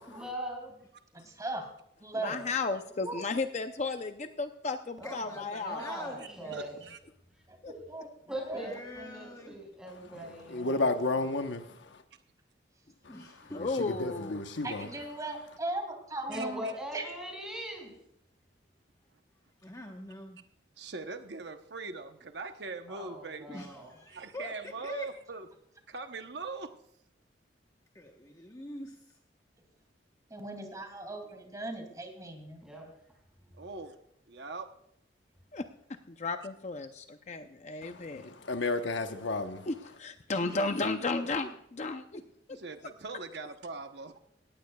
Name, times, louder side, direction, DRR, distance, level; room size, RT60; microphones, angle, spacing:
voice 1, 0.1-0.8 5.0-6.8 8.3-10.9 16.3-17.9 22.9-23.9 32.6-32.9, equal, 5° right, 5.3 m, -40 dB
voice 2, 1.1-1.7 2.0-2.5 3.0-3.2 7.5-8.7 14.6-16.7 16.9-17.1 30.3-32.6, right 2 dB, 20° right, 2.6 m, -39 dB
voice 3, 2.2-5.8 7.6-7.7 13.5-14.4 35.5-35.7 36.1-38.3 39.7-42.2, left 3 dB, 40° left, 0.6 m, -34 dB
voice 4, 5.0-6.6 8.5-9.6 13.1-13.6 19.6-20.4 23.5-25.1 27.9-29.2 40.4-41.5 42.1-42.2 42.5-42.6, left 1 dB, 20° left, 1.1 m, -45 dB
voice 5, 6.2-7.0 16.3-16.7 20.8-23.7 24.1-25.5 25.9-26.7 33.6-34.0 34.3-34.7 42.5-44.2, right 3 dB, 65° right, 0.9 m, -42 dB
voice 6, 10.1-12.0 13.0-13.1 13.4-14.9 37.8-39.7, left 2 dB, 85° left, 1.1 m, -33 dB
18.5 x 15.0 x 2.3 m
head